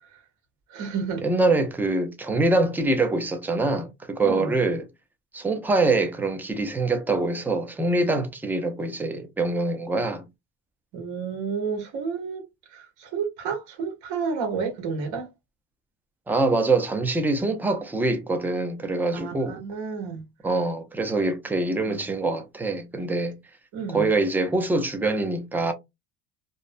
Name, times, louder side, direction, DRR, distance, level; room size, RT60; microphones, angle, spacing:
voice 1, 0.7-1.2 4.2-4.5 10.9-12.4 12.7-15.3 19.1-20.2 21.7-22.0 23.7-24.1, right 5 dB, 60° right, 0.9 m, -31 dB
voice 2, 1.2-4.8 5.3-10.2 16.3-19.6 20.4-23.4 23.9-25.7, right 2 dB, 5° right, 0.3 m, -24 dB
2.4 x 2.0 x 2.5 m
cardioid pair, 135°, 35 cm